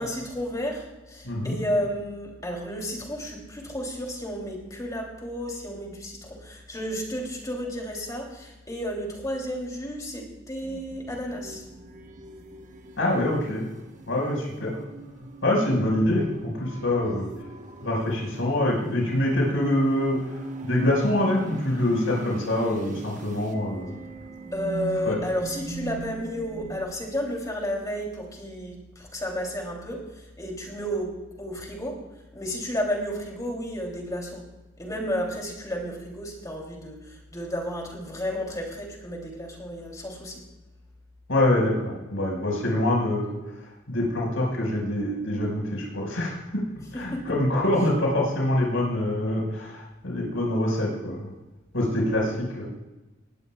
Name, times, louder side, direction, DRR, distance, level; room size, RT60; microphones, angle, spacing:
voice 1, 0.0-11.6 24.5-31.1 31.4-32.0 32.3-34.4 34.8-40.4 46.9-47.3, equal, 20° left, 0 dB, 3.1 m, -32 dB
voice 2, 1.2-1.6 13.0-13.7 14.1-14.8 15.4-17.3 17.8-20.2 20.6-24.0 25.0-25.2 41.3-43.4 43.9-46.6 46.9-51.3 51.7-52.7, left 1 dB, 90° left, -3 dB, 5.4 m, -25 dB
sound 1, 10.6-26.9, right 2 dB, 40° right, 1.3 m, -40 dB
19.5 x 16.5 x 2.4 m, 1.1 s
head